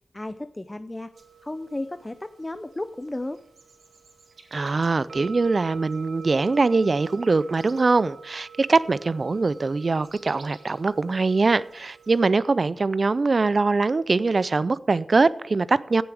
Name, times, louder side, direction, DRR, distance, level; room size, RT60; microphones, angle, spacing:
voice 1, 0.1-1.1 1.4-3.4, left 1 dB, 20° left, 0.5 m, -33 dB
sound 1, 1.1-12.2, right 6 dB, 85° right, 2.2 m, -46 dB
voice 2, 4.5-16.0, right 3 dB, 50° right, 0.4 m, -22 dB
16.0 x 7.0 x 4.9 m
wide cardioid pair, 70°, 0 cm